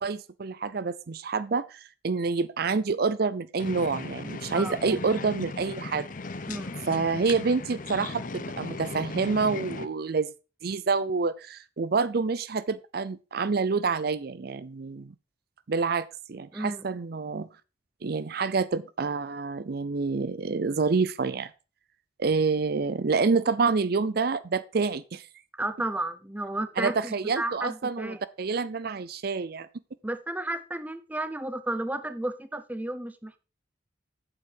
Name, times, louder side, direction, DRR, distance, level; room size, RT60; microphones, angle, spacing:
voice 1, 0.0-6.1 6.9-10.3 10.6-15.1 15.7-17.5 18.0-21.5 22.2-25.3 26.8-29.7, right 4 dB, 55° right, 0.5 m, -27 dB
sound 1, 3.6-9.9, left 3 dB, 50° left, 0.8 m, -37 dB
voice 2, 6.5-6.9 16.5-16.9 25.6-28.2 30.0-33.4, right 1 dB, 10° right, 0.7 m, -33 dB
8.6 x 7.6 x 4.6 m
head